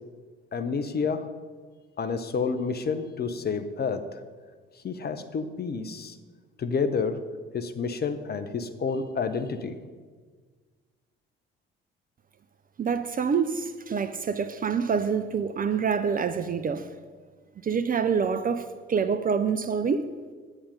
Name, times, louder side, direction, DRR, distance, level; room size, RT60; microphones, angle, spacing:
voice 1, 0.5-1.3 2.0-4.2 4.8-6.2 6.6-7.2 7.5-9.8, left 5 dB, 30° left, 0.9 m, -29 dB
voice 2, 12.8-16.9 17.6-20.1, right 6 dB, 30° right, 0.6 m, -26 dB
9.8 x 8.7 x 5.4 m
figure-of-eight pair, 45°, 30 cm